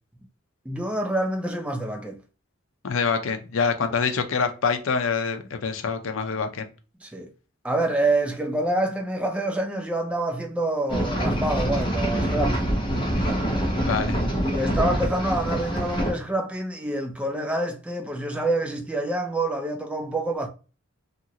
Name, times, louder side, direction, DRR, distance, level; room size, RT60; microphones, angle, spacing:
voice 1, 0.7-2.2 7.0-7.3 7.6-12.7 14.4-20.5, right 1 dB, 5° right, 0.3 m, -27 dB
voice 2, 2.8-6.7 13.8-14.2, left 5 dB, 70° left, 0.5 m, -25 dB
sound 1, 10.9-16.1, equal, 25° left, 0.7 m, -25 dB
2.8 x 2.5 x 2.8 m
head